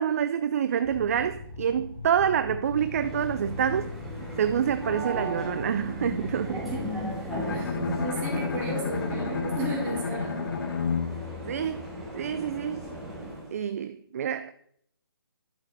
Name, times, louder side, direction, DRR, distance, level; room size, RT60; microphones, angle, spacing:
voice 1, 0.0-4.0 4.4-6.7 7.4-7.7 11.5-11.9 12.1-12.8 13.5-14.5, right 8 dB, 35° right, 0.4 m, -27 dB
sound 1, 0.8-7.9, left 4 dB, 25° left, 1.7 m, -40 dB
sound 2, 2.7-13.5, right 1 dB, ahead, 2.5 m, -37 dB
Bowed string instrument, 7.3-12.3, left 5 dB, 55° left, 1.3 m, -32 dB
voice 2, 7.5-10.5, right 3 dB, 15° right, 2.6 m, -35 dB
11.0 x 7.5 x 4.3 m
hypercardioid pair, 155°, 13 cm